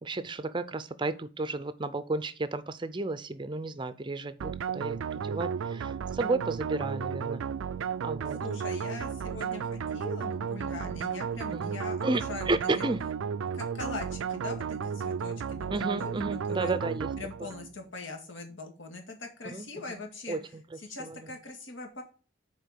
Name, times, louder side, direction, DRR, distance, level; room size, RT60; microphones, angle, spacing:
voice 1, 0.0-7.4 8.0-8.4 11.5-11.8 12.0-12.2 12.5-13.0 15.7-17.1 17.4-17.5 19.5-20.0 20.3-20.6 21.0-21.2, right 3 dB, 25° right, 0.5 m, -32 dB
sound 1, 4.4-17.7, right 7 dB, 90° right, 0.4 m, -33 dB
voice 2, 8.4-12.9 13.5-16.8 17.2-20.4 20.8-22.0, left 3 dB, 80° left, 2.0 m, -42 dB
6.6 x 4.5 x 6.4 m
head